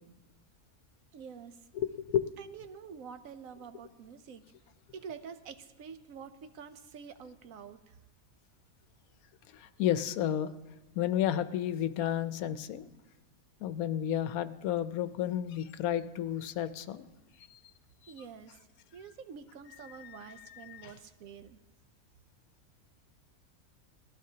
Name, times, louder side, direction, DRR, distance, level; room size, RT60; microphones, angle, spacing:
voice 1, 1.1-1.7 2.4-4.4 4.9-8.0 18.1-18.6 18.9-21.6, right 6 dB, 70° right, 9 dB, 1.1 m, -47 dB
voice 2, 1.7-2.3 9.5-10.5 10.9-12.9 13.6-17.1 17.5-17.6 18.0-18.1 20.0-20.9, left 10 dB, 80° left, 12 dB, 1.1 m, -32 dB
19.5 x 15.0 x 2.8 m, 1.1 s
omnidirectional pair, 1.5 m